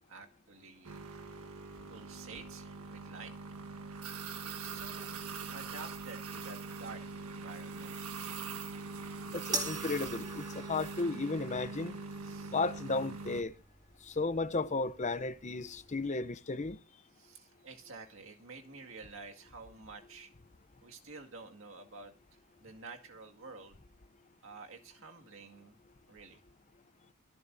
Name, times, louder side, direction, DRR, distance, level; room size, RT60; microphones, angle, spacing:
voice 1, 0.1-1.0 1.9-3.5 4.4-5.1 5.5-8.1 12.1-12.5 17.1-20.3 20.8-23.8 24.4-25.8 26.1-26.4, right 4 dB, 60° right, 2.1 m, -50 dB
sound 1, 0.8-13.4, right 4 dB, 80° right, 1.5 m, -42 dB
voice 2, 9.3-11.9 12.5-13.5 14.0-16.8, left 3 dB, 30° left, 0.7 m, -34 dB
sound 2, 9.5-16.1, right 3 dB, 15° right, 2.2 m, -44 dB
24.0 x 10.5 x 2.7 m
head